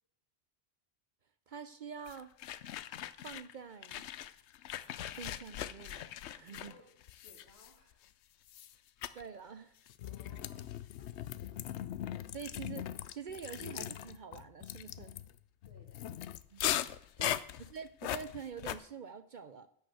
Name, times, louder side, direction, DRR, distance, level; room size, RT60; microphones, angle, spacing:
voice 1, 1.5-2.3 3.2-4.0 5.2-6.7 9.1-9.8 12.3-15.2 16.5-16.6 16.9-19.7, right 6 dB, 55° right, 12 dB, 0.7 m, -46 dB
sound 1, 2.1-3.5 3.8-8.1 8.5-8.7 9.0-9.2 9.9-18.8, left 11 dB, 90° left, 0.9 m, -40 dB
voice 2, 6.5-8.0 10.0-12.1 15.6-16.2, left 2 dB, 65° left, 1 dB, 3.2 m, -63 dB
11.0 x 6.6 x 7.8 m, 0.70 s
omnidirectional pair, 1.1 m